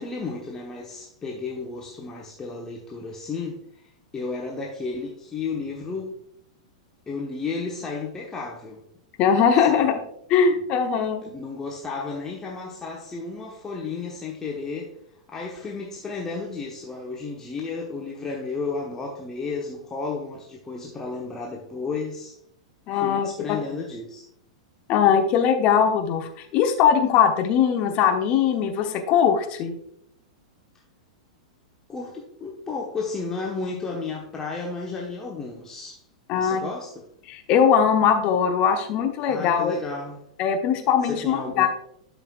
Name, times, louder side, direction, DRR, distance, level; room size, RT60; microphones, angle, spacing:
voice 1, 0.0-6.1 7.1-8.8 9.6-10.0 11.2-14.9 15.3-22.4 22.9-24.3 31.9-36.0 36.3-37.1 39.3-40.2 41.0-41.7, left 4 dB, 15° left, 1.1 m, -33 dB
voice 2, 9.2-9.9 10.3-11.2 22.9-23.6 24.9-29.8 36.3-36.6 37.3-39.7 40.4-41.7, left 7 dB, 35° left, 1.0 m, -20 dB
12.0 x 5.6 x 2.4 m
figure-of-eight pair, 95°, 3 cm